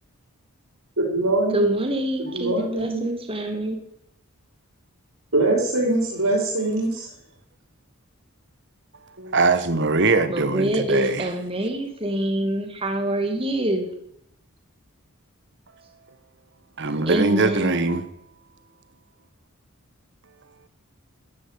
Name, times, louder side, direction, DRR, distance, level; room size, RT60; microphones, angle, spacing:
voice 1, 1.0-1.8 2.3-3.0 5.3-7.1, right 2 dB, 75° right, 4.8 m, -23 dB
voice 2, 1.5-3.8 10.3-13.9 17.1-17.9, right 1 dB, 25° right, 2.4 m, -26 dB
voice 3, 9.2-11.3 16.8-18.0, right 3 dB, 55° right, 1.4 m, -22 dB
14.0 x 12.5 x 8.2 m
head